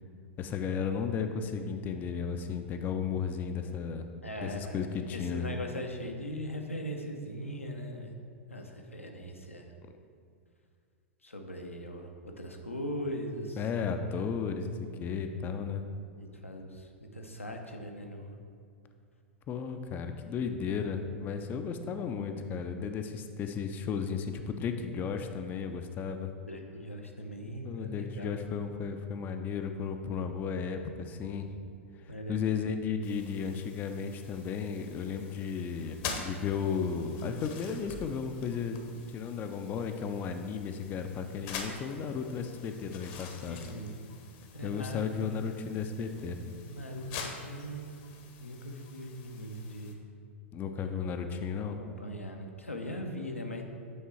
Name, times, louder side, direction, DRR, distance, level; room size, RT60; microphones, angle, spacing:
voice 1, 0.4-4.0 4.4-5.5 13.6-15.8 19.5-26.3 27.6-31.6 32.3-43.6 44.6-46.4 50.5-51.8, left 6 dB, 25° left, 7 dB, 0.4 m, -34 dB
voice 2, 4.2-4.9 5.1-8.2 8.5-9.7 11.2-13.6 16.4-18.3 26.5-28.4 32.1-32.5 43.5-44.0 44.5-45.1 46.6-47.9 48.4-50.0 51.5-53.6, equal, 90° left, 2 dB, 0.8 m, -40 dB
sound 1, 33.0-49.9, left 5 dB, 45° left, 0.8 m, -46 dB
8.4 x 3.7 x 4.4 m, 2.3 s
figure-of-eight pair, 100°, 7 cm